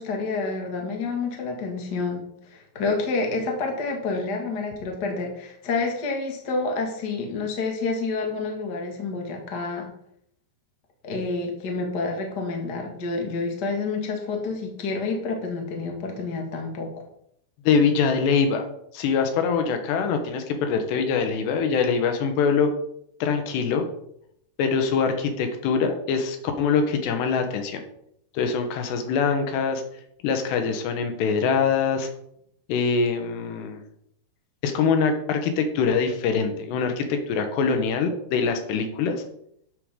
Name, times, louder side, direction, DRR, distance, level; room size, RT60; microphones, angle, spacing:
voice 1, 0.0-2.2 2.5-9.9 11.0-16.9, left 3 dB, 35° left, 1 dB, 1.8 m, -28 dB
voice 2, 17.6-18.6 18.9-22.7 23.2-23.9 24.6-27.8 28.3-29.8 30.2-32.1 32.7-33.8 34.6-39.2, left 5 dB, 85° left, 6 dB, 3.4 m, -23 dB
12.5 x 8.3 x 3.8 m, 0.71 s
omnidirectional pair, 4.7 m